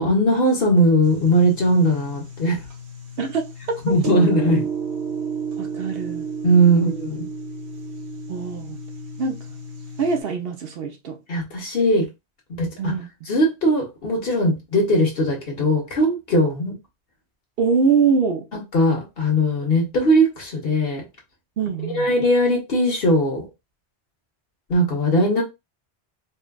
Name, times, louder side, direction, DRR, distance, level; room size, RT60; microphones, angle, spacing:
voice 1, 0.0-2.6 3.8-4.7 6.4-7.2 11.3-12.1 12.5-12.9 13.3-16.7 18.7-21.0 21.9-23.5 24.7-25.4, equal, 60° left, 1.2 m, -19 dB
sound 1, 1.0-10.2, right 5 dB, 85° right, 1.2 m, -32 dB
voice 2, 3.2-4.0 5.6-6.3 6.6-6.9 8.3-8.8 9.2-9.4 10.0-11.2 12.8-13.3 17.6-18.5 21.6-22.1, right 5 dB, 65° right, 0.8 m, -23 dB
4.4 x 2.3 x 2.2 m
omnidirectional pair, 1.1 m